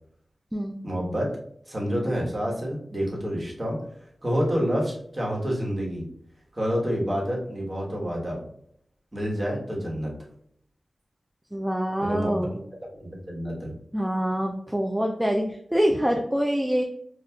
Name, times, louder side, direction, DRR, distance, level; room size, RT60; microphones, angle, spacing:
voice 1, 0.8-1.3 1.7-3.8 4.2-6.1 6.5-8.4 9.1-10.1 12.0-12.6 13.0-13.7, equal, 25° right, -3 dB, 1.2 m, -28 dB
voice 2, 11.5-12.5 13.9-16.8, equal, 5° right, 1 dB, 0.4 m, -25 dB
5.8 x 2.4 x 2.3 m, 0.68 s
wide cardioid pair, 85°, 0 cm